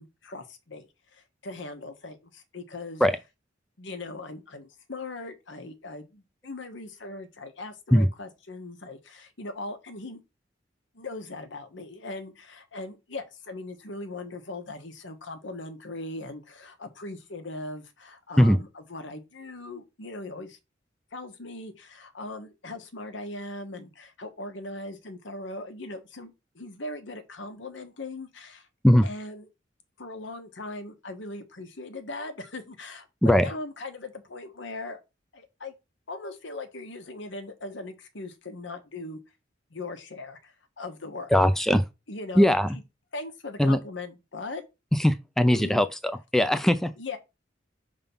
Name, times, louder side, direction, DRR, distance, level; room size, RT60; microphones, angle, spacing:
voice 1, 0.0-3.0 3.8-10.2 10.9-20.6 21.1-28.7 29.0-29.5 30.0-35.0 35.3-35.7 36.1-39.2 39.7-41.3 42.1-42.5 43.1-44.6 45.5-45.7 47.0-47.2, left 2 dB, 80° left, 1.2 m, -39 dB
voice 2, 41.3-41.8 42.4-42.8 43.6-43.8 45.0-46.9, equal, ahead, 0.4 m, -20 dB
5.7 x 3.6 x 5.4 m
head